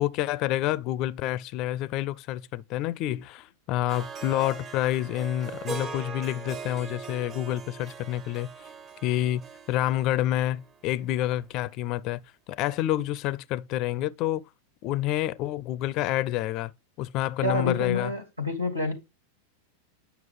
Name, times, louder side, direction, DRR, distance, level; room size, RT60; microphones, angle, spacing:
voice 1, 0.0-8.5 9.0-12.2 12.5-14.4 14.8-16.7 17.0-18.1, left 14 dB, 40° left, 0.4 m, -28 dB
Harp, 3.9-11.1, right 5 dB, 30° right, 1.0 m, -40 dB
voice 2, 17.4-18.9, left 2 dB, 85° right, 2.1 m, -28 dB
9.2 x 5.8 x 3.6 m
figure-of-eight pair, 90°, 0 cm